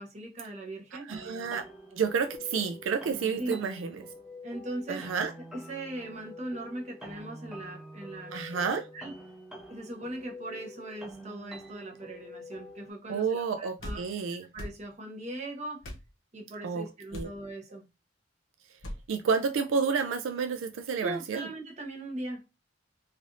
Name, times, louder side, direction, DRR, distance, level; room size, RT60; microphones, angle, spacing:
voice 1, 0.0-1.1 3.4-3.5 4.4-8.6 8.9-9.1 9.7-14.0 14.5-15.8 16.3-17.8 21.0-22.4, right 1 dB, 35° right, 0.9 m, -39 dB
voice 2, 0.9-1.7 1.9-4.0 4.9-5.3 8.3-8.9 13.1-14.5 16.6-16.9 17.1-17.3 19.1-21.5, right 5 dB, 80° right, 0.4 m, -30 dB
sound 1, 1.1-12.9, left 1 dB, 5° right, 0.4 m, -46 dB
sound 2, 13.8-14.0 14.5-14.8 15.8-16.1 17.1-17.4 18.8-19.0, left 1 dB, 75° left, 0.9 m, -39 dB
3.3 x 2.5 x 2.5 m
head